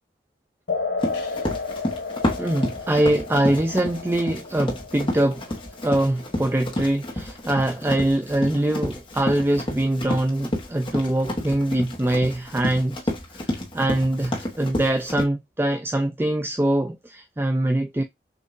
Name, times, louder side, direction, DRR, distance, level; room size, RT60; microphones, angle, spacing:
sound 1, 0.7-7.7, left 4 dB, 90° left, 1.6 m, -33 dB
Run, 1.0-15.2, left 1 dB, 30° left, 1.3 m, -30 dB
voice 1, 2.4-5.4 5.8-13.0 13.3-18.0, right 1 dB, 15° right, 0.4 m, -23 dB
6.4 x 2.7 x 2.6 m
head